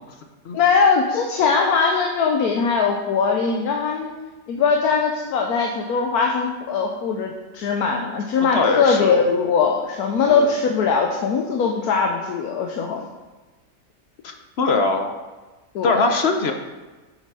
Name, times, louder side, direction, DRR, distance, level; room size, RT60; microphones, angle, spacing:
voice 1, 0.5-4.1 4.5-13.0 15.7-16.2, left 5 dB, 80° left, 2 dB, 1.3 m, -21 dB
voice 2, 8.5-9.2 10.3-10.5 14.2-15.1 15.8-16.5, left 3 dB, 55° left, 4 dB, 0.8 m, -21 dB
7.0 x 6.6 x 4.8 m, 1.2 s
omnidirectional pair, 1.6 m